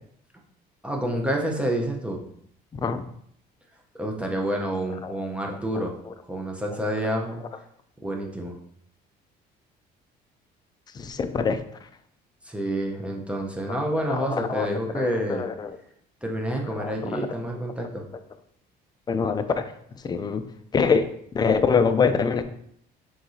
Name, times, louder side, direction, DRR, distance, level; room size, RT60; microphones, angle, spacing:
voice 1, 0.8-2.2 3.9-6.0 6.3-7.4 8.0-8.5 12.4-15.4 16.2-18.0, right 1 dB, 5° right, 1 dB, 0.7 m, -28 dB
voice 2, 11.0-11.6 14.1-14.7 14.9-15.7 16.8-17.2 19.1-19.6 20.0-20.4 20.7-21.1 21.3-22.4, left 5 dB, 25° left, 9 dB, 0.4 m, -24 dB
4.6 x 3.7 x 2.7 m, 0.67 s
cardioid pair, 110°, 17 cm